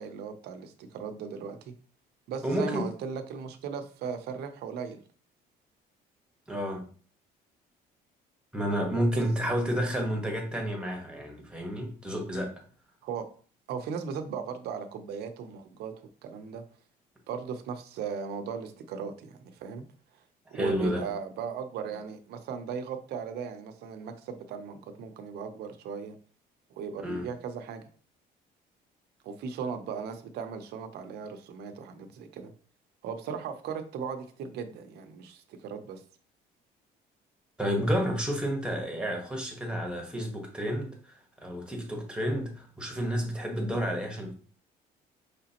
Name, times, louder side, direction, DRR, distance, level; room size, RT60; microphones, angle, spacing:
voice 1, 0.0-1.7 2.3-5.0 9.1-9.2 13.0-13.3 13.7-15.9 16.2-16.6 17.3-19.8 20.5-26.2 26.7-27.8 29.2-32.5 33.0-36.0, right 6 dB, 75° right, 0.7 m, -37 dB
voice 2, 2.4-2.9 6.5-6.9 8.5-12.6 20.5-21.1 27.0-27.3 37.6-44.3, equal, 5° right, 1.4 m, -30 dB
5.0 x 3.3 x 2.9 m
cardioid pair, 110°, 17 cm